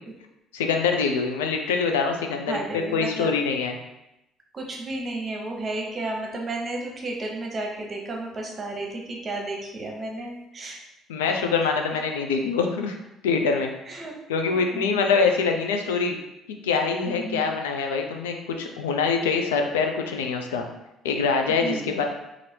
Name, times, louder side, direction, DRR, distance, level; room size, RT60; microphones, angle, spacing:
voice 1, 0.5-3.8 11.1-13.0 13.2-13.7 14.3-16.2 16.6-20.7 21.0-22.0, left 5 dB, 90° left, 4 dB, 0.3 m, -24 dB
voice 2, 2.5-3.4 4.5-10.8 11.3-11.4 13.9-14.2 14.7-15.2 17.1-17.5 21.6-22.0, right 2 dB, 40° right, 1 dB, 0.8 m, -32 dB
2.8 x 2.5 x 3.2 m, 0.90 s
hypercardioid pair, 60°, 0 cm